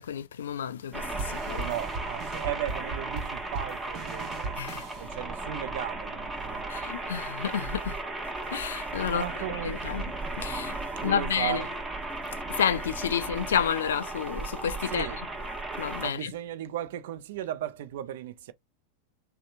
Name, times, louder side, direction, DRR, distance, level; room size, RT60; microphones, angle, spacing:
voice 1, 0.0-1.7 4.6-4.9 6.7-8.0 8.5-9.3 9.6-10.1 10.4-10.8 11.0-11.6 12.5-15.1 15.8-16.3, left 8 dB, 85° left, 0.4 m, -30 dB
sound 1, 0.9-16.1, right 2 dB, 15° right, 0.9 m, -35 dB
sound 2, 1.2-5.0, right 4 dB, 45° right, 0.8 m, -38 dB
voice 2, 1.5-4.6 5.0-7.3 9.1-10.0 11.0-11.7 14.9-15.2 16.0-18.5, right 12 dB, 70° right, 0.4 m, -36 dB
2.7 x 2.1 x 2.5 m
hypercardioid pair, 110°, 0 cm